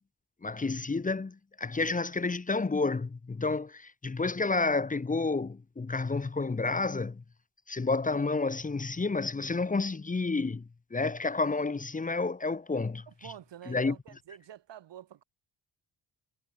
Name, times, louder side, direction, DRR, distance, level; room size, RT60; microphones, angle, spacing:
voice 1, 0.4-7.2 7.7-13.0 13.7-13.9, left 3 dB, 20° left, 1.2 m, -30 dB
voice 2, 13.1-15.2, right 11 dB, 85° right, 3.3 m, -48 dB
wide cardioid pair, 175°, 41 cm